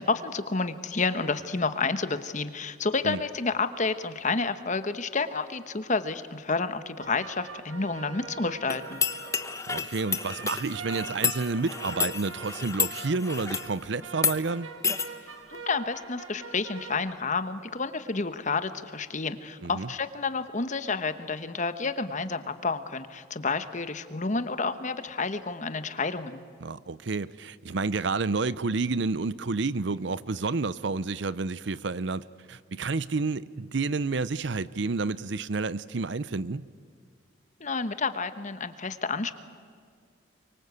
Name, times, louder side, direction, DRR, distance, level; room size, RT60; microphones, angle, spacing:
voice 1, 0.0-9.0 15.5-26.4 37.6-39.3, left 4 dB, 40° left, 11 dB, 1.1 m, -30 dB
sound 1, 7.0-17.1, right 5 dB, 85° right, 2.1 m, -43 dB
sound 2, 8.7-13.7 14.1-14.4 14.8-15.1, left 6 dB, 15° left, 0.9 m, -30 dB
voice 2, 9.7-14.7 19.6-19.9 26.6-32.2 32.5-36.7, right 4 dB, 60° right, 18 dB, 0.6 m, -30 dB
24.0 x 24.0 x 8.2 m, 2.1 s
head